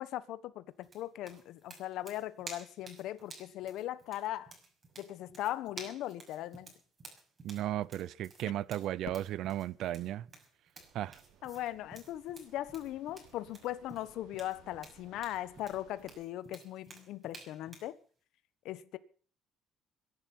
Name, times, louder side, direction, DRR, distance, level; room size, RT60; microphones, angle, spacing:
voice 1, 0.0-4.5 5.0-6.7 8.4-8.5 11.4-18.0 18.6-19.0, left 13 dB, 70° left, 1.4 m, -39 dB
sound 1, 0.8-17.9, right 3 dB, 25° right, 6.2 m, -52 dB
voice 2, 7.4-10.3 10.9-11.2, right 13 dB, 65° right, 0.7 m, -35 dB
Fireworks, 9.0-11.9, left 12 dB, 90° left, 2.8 m, -54 dB
sound 2, 10.7-16.2, right 8 dB, 85° right, 5.6 m, -62 dB
23.0 x 11.0 x 5.7 m
cardioid pair, 135°, 0 cm